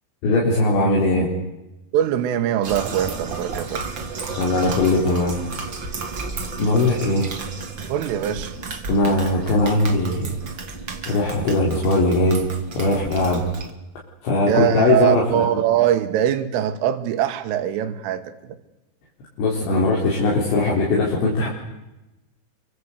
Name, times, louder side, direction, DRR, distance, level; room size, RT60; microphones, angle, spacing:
voice 1, 0.2-1.3 4.4-5.4 6.6-7.3 8.9-10.3 11.1-12.4 12.8-13.4 14.2-15.4 19.4-21.5, left 2 dB, 65° left, -3 dB, 6.2 m, -20 dB
voice 2, 1.9-3.8 7.9-8.6 14.5-18.2, right 11 dB, 90° right, 9 dB, 4.0 m, -22 dB
sound 1, 2.6-13.7, right 4 dB, 40° right, 1.7 m, -33 dB
28.5 x 25.0 x 8.2 m, 0.99 s
omnidirectional pair, 5.6 m